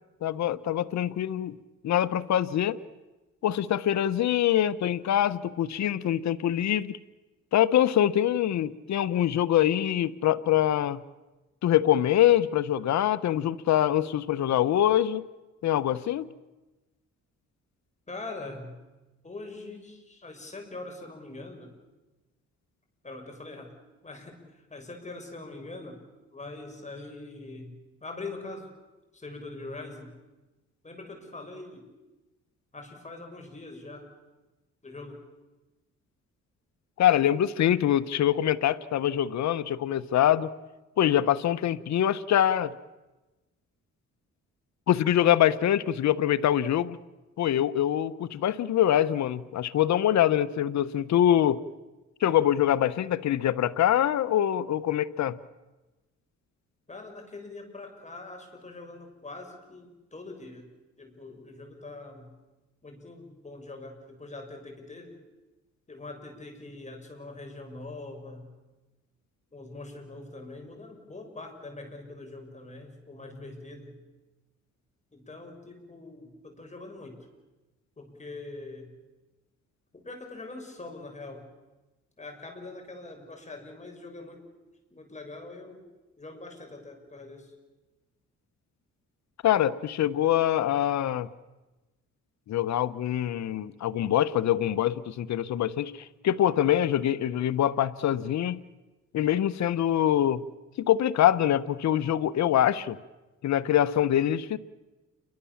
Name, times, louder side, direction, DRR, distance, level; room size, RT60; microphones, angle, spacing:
voice 1, 0.2-1.6 1.8-2.8 3.4-7.0 7.5-11.0 11.6-15.2 15.6-16.3 37.0-40.5 41.0-42.7 44.9-47.0 47.4-51.6 52.2-55.3 89.4-91.3 92.5-98.6 99.1-100.4 100.8-103.0 103.4-104.6, left 11 dB, 65° left, 14 dB, 1.1 m, -24 dB
voice 2, 18.1-18.7 19.2-21.7 23.0-23.7 24.0-26.0 26.3-27.7 28.0-28.7 29.1-30.2 30.8-31.9 32.7-34.1 34.8-35.3 56.9-60.7 61.0-62.3 62.8-65.2 65.9-68.5 69.5-74.0 75.1-77.3 78.0-78.9 79.9-81.5 82.2-84.5 84.9-85.9 86.2-87.5, left 2 dB, 25° left, 4 dB, 6.9 m, -43 dB
29.0 x 23.5 x 7.3 m, 1.1 s
cardioid pair, 90°, 30 cm